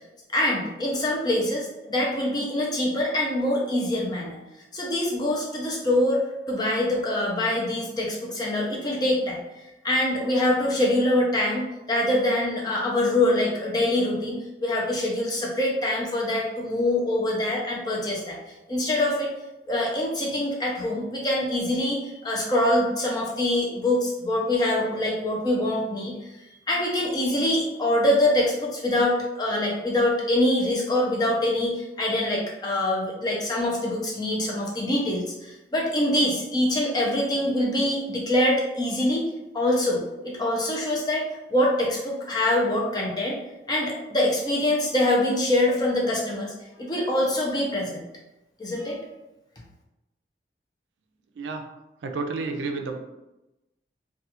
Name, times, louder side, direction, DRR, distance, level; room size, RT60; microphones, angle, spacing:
voice 1, 0.3-4.4 4.7-6.2 6.5-9.4 9.8-18.4 18.7-19.3 19.7-26.3 26.7-39.3 39.5-41.2 41.5-43.4 43.7-46.5 46.8-48.0 48.6-49.0, left 1 dB, 20° left, -3 dB, 0.5 m, -24 dB
voice 2, 52.0-53.0, right 3 dB, 85° right, 4 dB, 0.4 m, -30 dB
2.3 x 2.3 x 2.8 m, 0.96 s
head